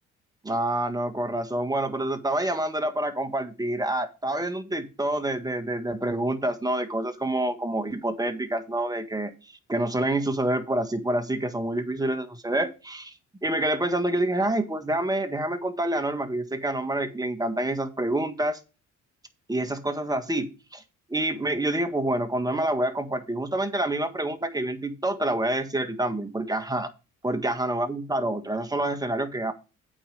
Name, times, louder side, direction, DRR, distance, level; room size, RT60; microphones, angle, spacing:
voice 1, 0.4-13.1 13.4-18.6 19.5-20.8 21.1-26.9 27.2-29.5, right 1 dB, 10° right, 7 dB, 1.6 m, -27 dB
8.6 x 4.8 x 6.7 m, 0.30 s
cardioid pair, 90°, 30 cm